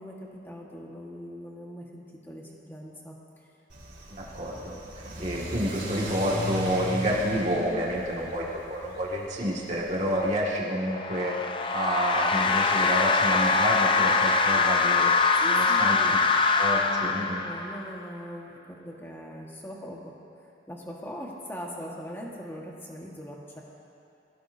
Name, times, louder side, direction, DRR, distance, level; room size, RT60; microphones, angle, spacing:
voice 1, 0.0-3.1 3.4-3.5 15.3-16.2 16.8-20.1 20.4-23.6, equal, 10° left, -2 dB, 1.5 m, -41 dB
Car / Accelerating revving vroom, 3.7-10.4, equal, 70° right, 4.0 m, -38 dB
voice 2, 4.2-11.4 11.7-15.1 15.5-16.0 16.5-17.4, equal, 40° right, -4 dB, 2.1 m, -29 dB
sound 1, 10.8-17.9, left 4 dB, 30° left, 0.5 m, -23 dB
22.0 x 16.0 x 2.8 m, 2.8 s
head